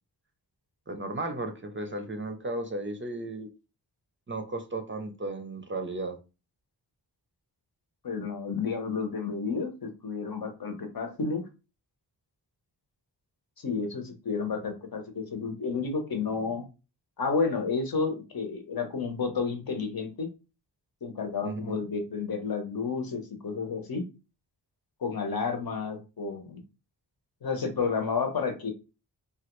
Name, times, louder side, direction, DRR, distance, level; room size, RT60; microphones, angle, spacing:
voice 1, 0.9-3.5 4.3-6.2 21.4-21.8, right 2 dB, 30° right, 5 dB, 0.5 m, -34 dB
voice 2, 8.0-11.4 13.6-16.6 17.2-20.3 21.0-24.0 25.0-26.6 27.4-28.7, left 5 dB, 55° left, 4 dB, 0.9 m, -31 dB
3.0 x 2.3 x 3.0 m, 0.30 s
wide cardioid pair, 75°, 42 cm